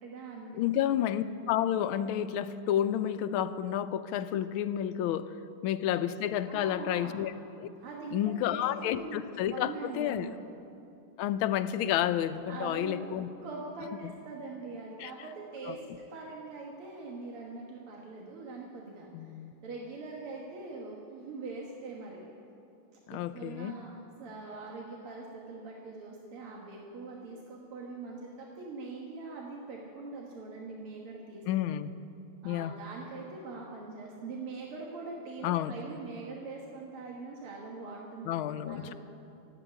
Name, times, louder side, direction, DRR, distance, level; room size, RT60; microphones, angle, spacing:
voice 1, 0.0-0.6 6.5-7.2 7.8-9.2 9.5-10.5 12.5-13.1 13.4-15.8 16.1-19.1 19.6-22.2 23.1-31.4 32.4-38.9, right 3 dB, 85° right, -2 dB, 2.4 m, -42 dB
voice 2, 0.5-5.3 5.6-7.3 7.6-7.7 8.1-10.3 11.2-13.3 15.0-15.1 15.7-15.8 19.1-19.5 23.1-23.7 31.5-31.9 32.4-32.8 35.4-35.7 38.3-38.9, left 11 dB, 80° left, 12 dB, 1.4 m, -30 dB
13.5 x 9.1 x 9.9 m, 2.6 s
omnidirectional pair, 2.4 m